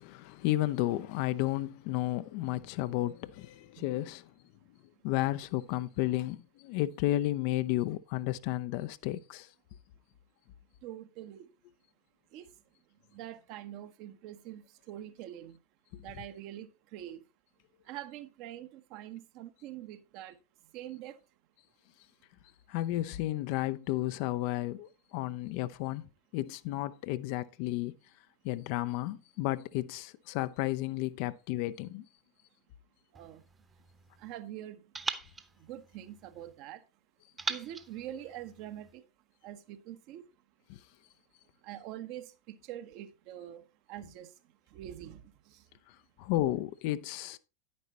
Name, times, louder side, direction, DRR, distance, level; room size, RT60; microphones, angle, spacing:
voice 1, 0.0-4.2 5.0-9.5 22.7-26.0 26.3-27.9 28.4-32.0 46.2-47.4, left 16 dB, 45° left, 0.4 m, -32 dB
voice 2, 10.8-11.5 12.3-12.5 13.1-15.6 16.0-17.2 17.9-20.3 20.7-21.2 33.1-33.4 34.2-34.8 35.7-36.8 37.5-39.0 39.4-40.2 41.6-43.6 43.9-44.3 44.7-45.2, right 12 dB, 40° right, 0.9 m, -44 dB
sound 1, 33.1-34.4 34.9-36.6 37.4-39.0, right 4 dB, 15° right, 1.0 m, -42 dB
10.0 x 9.5 x 2.9 m
figure-of-eight pair, 90°, 0 cm